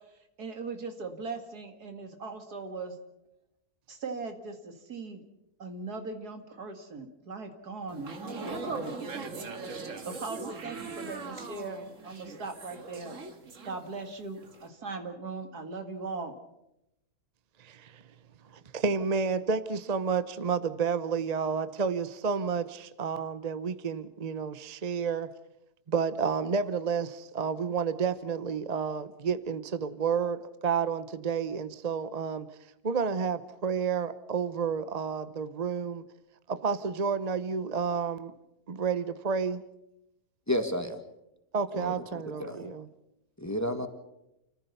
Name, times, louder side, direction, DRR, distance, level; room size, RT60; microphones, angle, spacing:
voice 1, 0.4-3.0 3.9-5.2 5.6-9.0 10.1-13.2 13.6-16.3, right 4 dB, 90° right, 2.7 m, -39 dB
sound 1, 7.9-14.1 14.4-14.7, right 3 dB, 55° right, 2.1 m, -40 dB
voice 2, 17.6-18.0 18.5-25.3 25.9-32.5 32.8-36.0 36.5-38.3 38.7-39.6 41.5-42.9, right 6 dB, 35° right, 0.7 m, -30 dB
voice 3, 40.5-41.0 41.8-42.7 43.4-43.9, equal, 10° left, 1.6 m, -32 dB
29.5 x 15.0 x 7.0 m
omnidirectional pair, 1.6 m